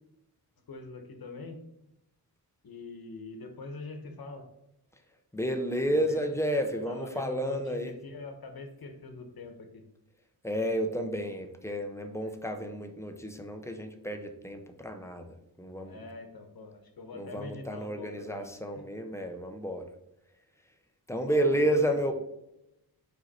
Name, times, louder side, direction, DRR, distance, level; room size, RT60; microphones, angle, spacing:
voice 1, 0.7-1.6 2.6-4.4 5.9-6.3 6.9-9.8 12.2-12.3 15.8-18.5 21.3-21.8, left 3 dB, 60° left, 6 dB, 1.1 m, -43 dB
voice 2, 5.3-8.0 10.4-16.0 17.1-19.9 21.1-22.1, equal, 5° left, 5 dB, 0.6 m, -31 dB
5.3 x 4.6 x 4.1 m, 0.87 s
wide cardioid pair, 155°, 40 cm